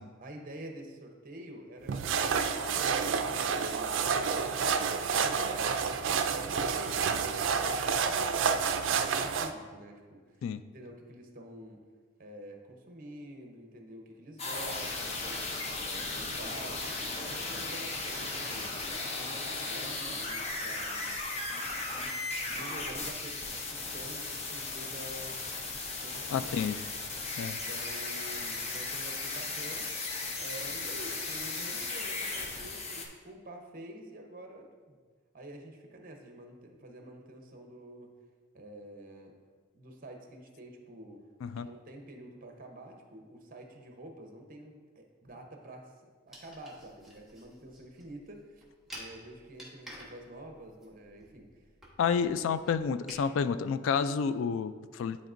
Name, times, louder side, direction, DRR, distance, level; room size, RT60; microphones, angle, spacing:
voice 1, 0.0-10.5 10.7-11.8 12.2-15.5 15.8-18.8 19.5-21.1 21.5-25.4 26.0-26.7 27.4-29.9 30.4-35.0 35.3-38.1 38.5-39.4 39.7-41.3 41.6-45.9 46.3-48.6 48.9-51.7 52.0-52.2, right 1 dB, 45° right, 3 dB, 0.8 m, -48 dB
sound 1, 1.9-9.5, right 6 dB, 70° right, 0.4 m, -29 dB
sound 2, 14.4-33.1, left 3 dB, 30° left, 0.7 m, -36 dB
voice 2, 26.3-26.8 27.4-27.6 41.4-41.7 52.0-55.2, left 6 dB, 80° left, 14 dB, 0.3 m, -30 dB
sound 3, 46.3-53.3, right 1 dB, ahead, 1.1 m, -51 dB
10.5 x 4.2 x 2.6 m, 1.5 s
head